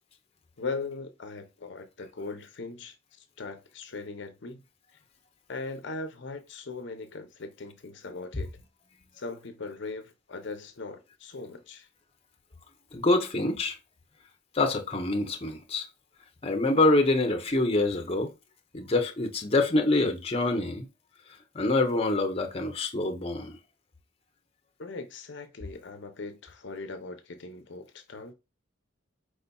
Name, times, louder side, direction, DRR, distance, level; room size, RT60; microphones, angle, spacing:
voice 1, 0.6-4.6 4.9-5.0 5.5-8.5 9.1-11.9 24.8-28.3, left 3 dB, 65° left, 0.6 m, -39 dB
voice 2, 12.9-13.8 14.5-15.9 16.4-18.3 18.7-20.9 21.5-23.6, left 2 dB, 30° left, 0.7 m, -25 dB
4.8 x 4.0 x 2.2 m
head